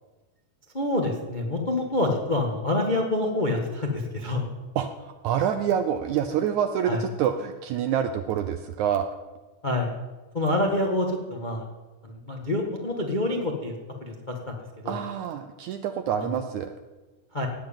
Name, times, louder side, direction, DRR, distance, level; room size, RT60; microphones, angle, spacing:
voice 1, 0.7-4.5 6.8-7.0 9.6-9.9 10.3-11.6 12.0-13.7 14.0-14.1 14.5-14.6 14.8-15.0 16.2-16.3 17.3-17.5, left 1 dB, 75° left, 1 dB, 0.4 m, -26 dB
voice 2, 4.8-9.1 14.9-16.7, right 9 dB, 80° right, 9 dB, 1.7 m, -27 dB
18.0 x 7.6 x 8.9 m, 1.2 s
omnidirectional pair, 4.2 m